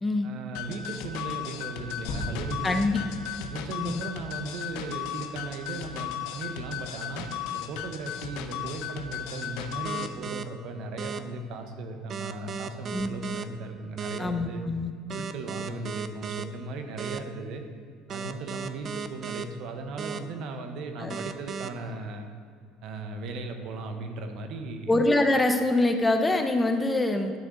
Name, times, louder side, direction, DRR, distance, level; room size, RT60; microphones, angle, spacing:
voice 1, 0.2-3.1 3.5-14.6 15.1-17.6 18.1-22.3 22.8-24.9, right 3 dB, 65° right, 6 dB, 1.0 m, -37 dB
sound 1, 0.5-10.1, left 9 dB, 80° left, 0.7 m, -36 dB
sound 2, 2.1-4.0, left 1 dB, 55° left, 1.5 m, -37 dB
voice 2, 2.6-3.0 3.8-4.0 12.9-13.1 14.2-14.9 21.0-21.2 24.9-27.3, left 2 dB, 15° left, 6 dB, 0.7 m, -24 dB
sound 3, 9.8-10.4 11.0-11.2 12.1-13.4 14.0-14.2 15.1-16.4 17.0-17.2 18.1-19.4 20.0-20.2 21.1-21.7, right 6 dB, 40° right, 0.4 m, -35 dB
10.0 x 6.3 x 3.9 m, 2.2 s
supercardioid pair, 105°, 0 cm